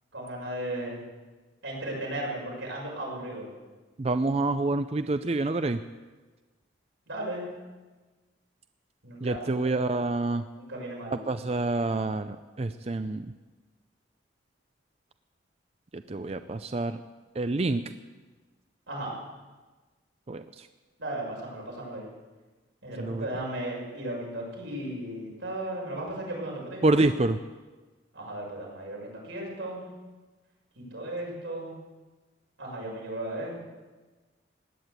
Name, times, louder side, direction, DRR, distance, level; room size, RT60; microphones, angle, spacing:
voice 1, 0.1-1.0 1.6-3.5 7.1-7.5 9.0-9.7 10.5-11.2 18.9-19.2 21.0-22.0 22.8-27.0 28.1-29.9 30.8-31.7 32.6-33.5, right 1 dB, 90° right, -2 dB, 6.3 m, -35 dB
voice 2, 4.0-5.8 9.2-10.4 11.1-13.3 15.9-17.0 17.4-17.8 20.3-20.7 23.0-23.3 26.8-27.4, right 2 dB, 30° right, 10 dB, 0.4 m, -27 dB
17.0 x 10.5 x 8.1 m, 1.3 s
head